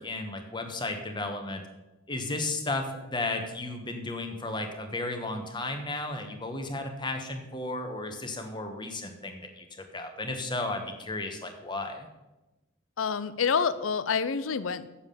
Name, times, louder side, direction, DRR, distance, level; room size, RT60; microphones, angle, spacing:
voice 1, 0.0-1.6 2.1-12.1, left 2 dB, 20° left, 5 dB, 1.1 m, -34 dB
voice 2, 13.0-14.9, left 6 dB, 75° left, 14 dB, 0.6 m, -27 dB
7.5 x 7.1 x 6.7 m, 1.0 s
head